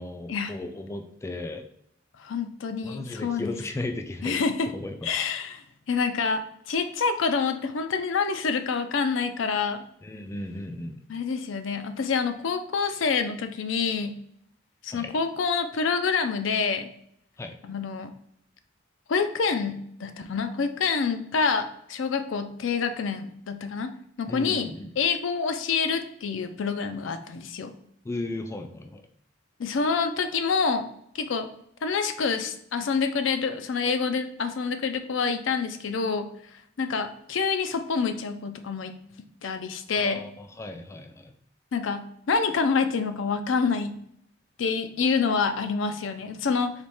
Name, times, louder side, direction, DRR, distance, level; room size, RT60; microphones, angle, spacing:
voice 1, 0.0-1.7 2.8-4.4 4.7-5.0 10.0-11.0 14.9-15.1 17.4-17.6 24.3-24.9 28.0-29.0 40.0-41.3, left 2 dB, 15° left, 5 dB, 0.3 m, -35 dB
voice 2, 2.2-3.6 4.2-4.7 5.0-9.8 11.1-14.2 14.8-16.9 17.6-18.1 19.1-23.9 24.2-27.7 29.6-30.9 31.1-31.5 31.8-36.3 36.8-39.0 39.4-40.2 41.7-44.0 44.6-46.7, left 5 dB, 75° left, 8 dB, 0.5 m, -27 dB
4.1 x 3.0 x 3.4 m, 0.70 s
head